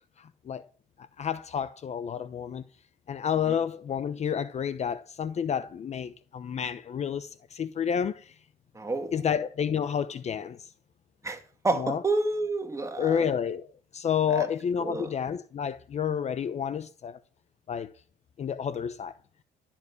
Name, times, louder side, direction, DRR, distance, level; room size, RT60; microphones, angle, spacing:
voice 1, 1.2-2.6 3.1-8.3 9.1-10.6 11.8-12.0 13.0-13.7 13.9-17.2 17.7-17.9 18.4-19.1, left 8 dB, 40° left, 0.8 m, -30 dB
voice 2, 8.7-9.2 11.2-13.3 14.3-14.5 14.8-15.1, right 2 dB, 15° right, 2.6 m, -30 dB
13.0 x 7.2 x 9.6 m
cardioid pair, 110°, 17 cm